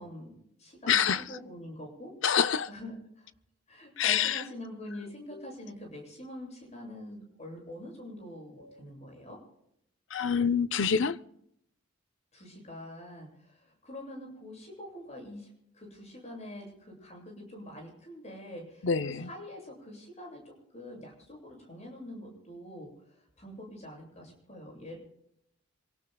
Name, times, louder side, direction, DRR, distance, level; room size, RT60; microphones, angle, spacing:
voice 1, 0.0-2.4 2.7-3.3 3.7-9.4 12.3-25.0, left 1 dB, 35° left, 7.7 m, -45 dB
voice 2, 0.9-1.2 2.2-2.7 4.0-4.4 10.1-11.2 18.8-19.3, left 7 dB, 65° left, 0.7 m, -26 dB
27.0 x 18.0 x 2.3 m
head